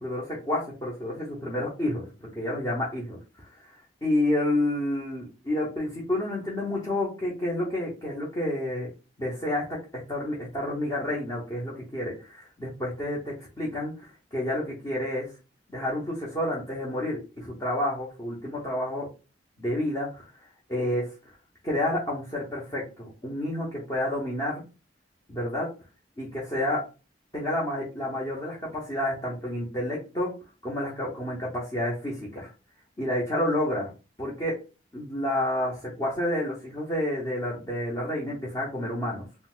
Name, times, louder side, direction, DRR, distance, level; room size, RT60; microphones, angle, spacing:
voice 1, 0.0-8.9 9.2-15.3 15.7-19.1 19.6-20.2 20.7-21.1 21.6-24.6 25.3-25.7 26.2-26.8 27.3-30.3 30.6-32.5 33.0-33.9 34.2-34.6 34.9-39.2, left 1 dB, 20° left, -5 dB, 0.8 m, -30 dB
3.9 x 2.1 x 2.4 m, 0.32 s
head